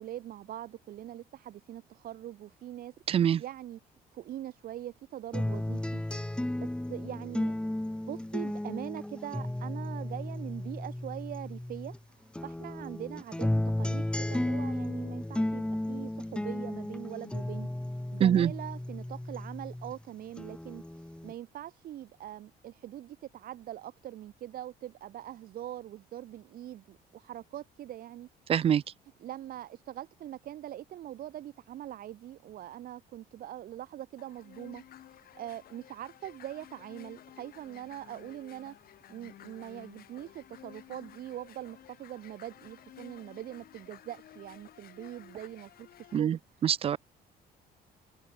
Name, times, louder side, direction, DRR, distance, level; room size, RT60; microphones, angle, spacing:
voice 1, 0.0-2.9 3.4-3.8 4.1-6.0 6.3-7.6 8.0-17.7 18.1-28.3 29.2-34.8 35.1-38.8 39.1-46.7, right 12 dB, 60° right, 1.2 m, -42 dB
voice 2, 3.1-3.4 18.2-18.5 28.5-28.8 46.1-46.4 46.6-47.0, right 9 dB, 35° right, 0.4 m, -24 dB
sound 1, 5.3-12.0 12.3-20.0 20.4-21.3, left 1 dB, 5° left, 1.5 m, -34 dB
sound 2, 34.2-46.2, left 12 dB, 60° left, 3.4 m, -53 dB
cardioid pair, 110°, 17 cm